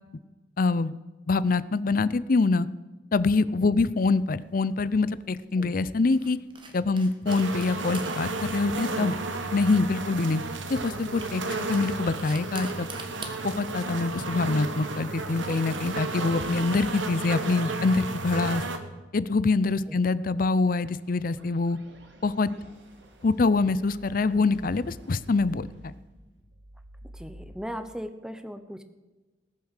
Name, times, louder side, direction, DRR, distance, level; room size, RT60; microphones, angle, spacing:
voice 1, 0.6-1.0 1.3-2.7 3.1-6.4 6.7-9.1 9.5-10.4 10.7-11.4 11.7-12.9 13.4-18.6 19.1-21.8 22.2-22.5 23.2-25.9, left 3 dB, 50° left, 17 dB, 0.5 m, -25 dB
sound 1, 3.9-16.5, right 4 dB, 25° right, 1.4 m, -48 dB
sound 2, 7.3-18.8, right 3 dB, 90° right, 1.4 m, -33 dB
sound 3, 20.7-27.5, right 1 dB, 70° right, 2.0 m, -50 dB
voice 2, 27.1-28.8, equal, 5° right, 9 dB, 0.8 m, -38 dB
19.5 x 6.9 x 6.5 m, 1.2 s
head